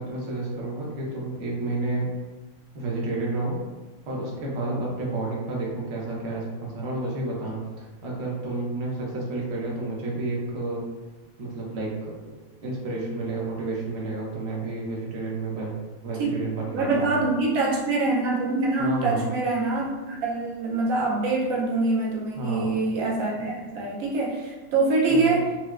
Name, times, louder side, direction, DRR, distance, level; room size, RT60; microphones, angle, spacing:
voice 1, 0.0-2.1 2.7-3.6 4.0-10.8 11.4-12.3 12.6-15.8 16.0-17.2 18.8-19.3 22.4-22.8 25.1-25.3, right 2 dB, 55° right, -4 dB, 1.0 m, -30 dB
voice 2, 16.2-25.5, right 3 dB, 90° right, -3 dB, 1.1 m, -25 dB
4.3 x 2.0 x 2.4 m, 1.2 s
omnidirectional pair, 1.4 m